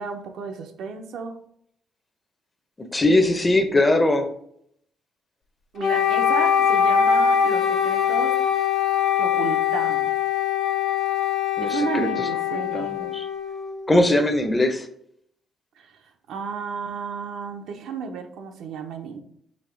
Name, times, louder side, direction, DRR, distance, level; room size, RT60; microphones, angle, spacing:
voice 1, 0.0-1.4 5.7-8.5 9.2-10.1 11.6-12.9 15.8-16.0 16.3-19.2, right 5 dB, 80° right, 0.6 m, -33 dB
voice 2, 2.9-4.3 11.6-12.1 12.7-13.3 13.9-14.9, left 1 dB, 20° left, 0.6 m, -20 dB
Wind instrument woodwind instrument, 5.8-13.9, left 8 dB, 60° left, 0.9 m, -22 dB
4.1 x 2.8 x 4.4 m
cardioid pair, 90°, 0 cm